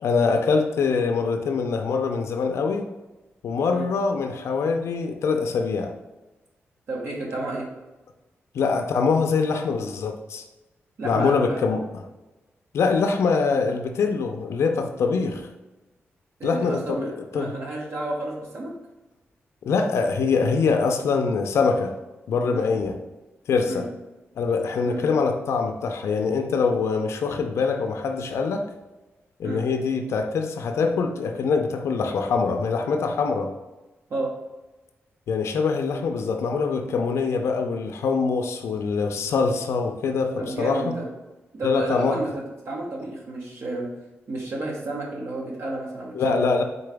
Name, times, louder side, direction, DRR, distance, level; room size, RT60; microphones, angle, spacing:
voice 1, 0.0-2.9 3.4-5.9 8.5-10.4 11.0-11.8 12.7-15.5 16.4-17.6 19.6-21.9 22.3-23.0 23.5-23.9 24.4-28.7 29.4-33.5 35.3-41.0 41.6-42.2 46.1-46.6, left 4 dB, 90° left, 4 dB, 0.4 m, -24 dB
voice 2, 6.9-7.7 11.0-11.6 16.4-18.7 22.5-22.7 23.7-23.8 24.8-25.0 29.4-29.6 34.1-34.3 40.4-41.0 41.5-43.9 44.3-46.4, right 2 dB, 65° right, -3 dB, 0.9 m, -31 dB
3.9 x 3.8 x 3.4 m, 1.1 s
wide cardioid pair, 105°, 5 cm